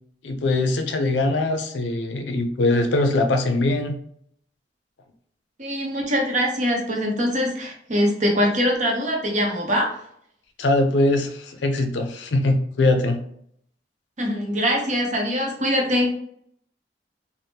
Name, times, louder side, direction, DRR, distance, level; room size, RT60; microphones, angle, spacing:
voice 1, 0.2-3.9 10.6-13.2, left 2 dB, 90° left, 7 dB, 0.5 m, -22 dB
voice 2, 5.6-9.9 14.2-16.1, equal, 45° right, 0 dB, 0.7 m, -23 dB
3.4 x 2.0 x 2.7 m, 0.68 s
head